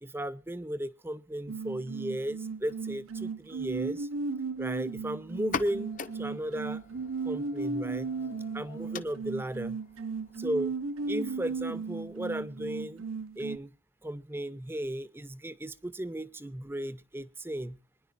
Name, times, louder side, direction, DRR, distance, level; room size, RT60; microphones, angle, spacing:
voice 1, 0.0-4.1 4.6-6.8 7.2-8.1 8.5-9.8 10.4-10.7 11.1-13.1 13.4-13.7 14.0-17.8, right 1 dB, 10° right, 0.5 m, -35 dB
sound 1, 1.5-13.6, right 4 dB, 90° right, 0.6 m, -36 dB
sound 2, 5.3-12.8, left 5 dB, 40° left, 0.7 m, -44 dB
27.0 x 10.0 x 2.5 m
head